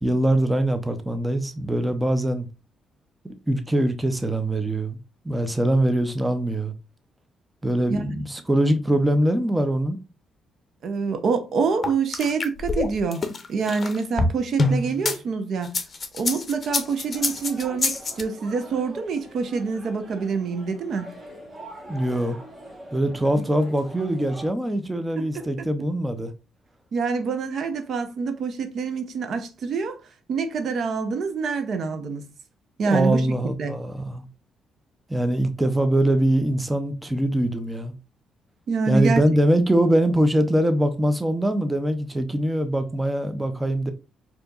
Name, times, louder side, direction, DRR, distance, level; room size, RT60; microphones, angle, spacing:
voice 1, 0.0-2.5 3.2-5.0 5.2-6.7 7.6-10.0 21.9-22.4 22.9-26.3 32.8-34.2 35.1-37.9 38.9-43.9, right 1 dB, 10° right, 0.5 m, -23 dB
voice 2, 7.9-8.2 10.8-15.7 16.1-21.1 23.4-23.5 25.2-25.7 26.9-30.0 30.3-32.3 32.8-33.2 33.6-33.7 38.7-39.2, right 5 dB, 60° right, 0.6 m, -26 dB
sound 1, 11.8-15.2 15.6-18.2, left 3 dB, 35° left, 0.7 m, -25 dB
sound 2, 16.7-24.5, right 1 dB, 30° right, 1.5 m, -43 dB
4.3 x 2.8 x 2.3 m
cardioid pair, 90°, 0 cm